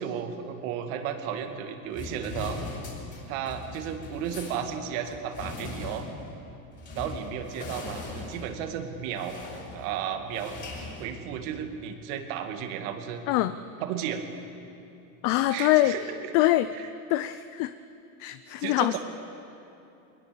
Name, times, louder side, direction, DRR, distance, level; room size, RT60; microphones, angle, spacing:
voice 1, 0.0-2.6 3.3-6.1 6.9-9.4 9.7-10.6 11.0-13.2 13.8-14.3 15.5-16.3 16.7-16.9 18.6-19.0, right 8 dB, 60° right, 5 dB, 2.5 m, -34 dB
sound 1, 1.9-11.7, left 3 dB, 25° left, 5.9 m, -40 dB
voice 2, 15.2-15.9 16.3-16.7 17.1-17.7 18.2-18.9, left 16 dB, 45° left, 13 dB, 0.6 m, -23 dB
22.5 x 20.0 x 7.1 m, 2.8 s
supercardioid pair, 130°, 45 cm